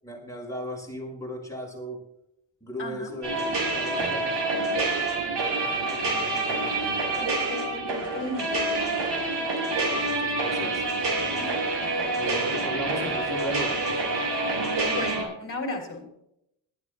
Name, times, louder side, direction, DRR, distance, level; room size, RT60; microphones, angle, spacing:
voice 1, 0.0-2.0 2.6-7.0 9.7-11.5 12.1-14.2, equal, 5° left, -1 dB, 6.7 m, -38 dB
voice 2, 2.8-3.1 7.2-9.3 11.4-11.5 12.5-12.6 14.8-16.1, left 2 dB, 30° left, 1 dB, 3.9 m, -35 dB
sound 1, 3.2-15.2, right 2 dB, 65° right, 5.6 m, -27 dB
21.0 x 13.5 x 2.4 m, 0.77 s
cardioid pair, 105°, 45 cm